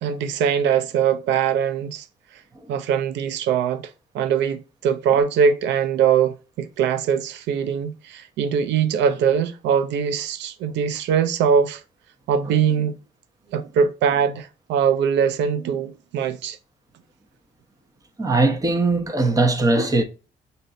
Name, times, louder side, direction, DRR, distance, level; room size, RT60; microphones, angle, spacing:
voice 1, 0.0-2.0 2.7-11.8 12.3-13.0 13.5-16.6, right 7 dB, 80° right, 0.6 m, -22 dB
voice 2, 18.2-20.0, right 2 dB, 20° right, 1.0 m, -19 dB
6.6 x 2.6 x 2.5 m
cardioid pair, 75°, 18 cm